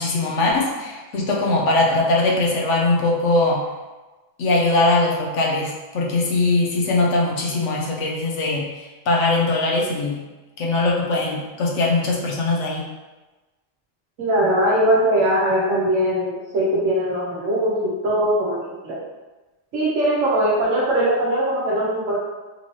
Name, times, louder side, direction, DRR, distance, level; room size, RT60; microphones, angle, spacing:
voice 1, 0.0-3.6 4.4-10.2 10.6-12.8, left 2 dB, 70° left, -2 dB, 1.0 m, -21 dB
voice 2, 14.2-19.0 19.7-22.2, right 1 dB, 85° right, -6 dB, 1.2 m, -20 dB
4.0 x 2.8 x 3.0 m, 1.2 s
omnidirectional pair, 1.3 m